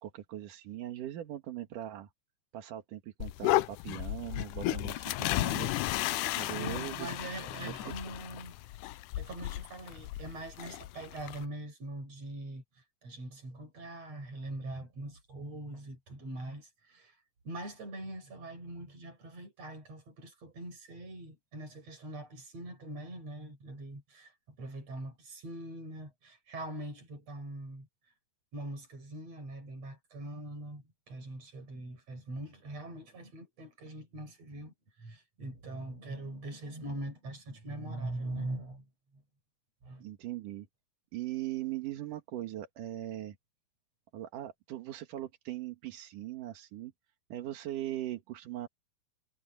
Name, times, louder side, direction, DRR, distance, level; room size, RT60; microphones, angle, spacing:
voice 1, 0.0-2.1 2.5-5.7 6.4-7.1 7.6-7.8 40.0-40.7 41.1-43.4 44.1-46.9 47.3-48.7, right 13 dB, 90° right, 3.1 m, -40 dB
sound 1, 3.2-11.5, left 16 dB, 85° left, 2.2 m, -34 dB
voice 2, 6.6-8.5 9.2-12.6 13.0-17.2 17.4-27.9 28.5-34.7 35.0-38.9 39.1-39.2 39.8-40.0, right 2 dB, 55° right, 7.4 m, -42 dB
omnidirectional pair, 3.6 m